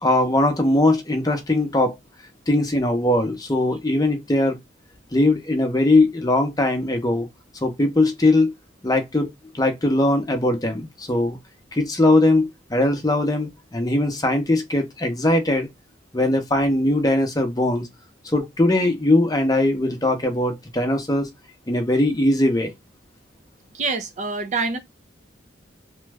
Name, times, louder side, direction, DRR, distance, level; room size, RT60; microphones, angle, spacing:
voice 1, 0.0-2.0 2.5-4.6 5.1-7.3 7.6-8.5 8.8-9.3 9.5-11.4 11.7-15.7 16.1-17.9 18.2-21.3 21.7-22.7, left 1 dB, 20° left, 0.7 m, -20 dB
voice 2, 23.7-24.8, right 4 dB, 40° right, 0.5 m, -25 dB
3.0 x 2.3 x 3.3 m
head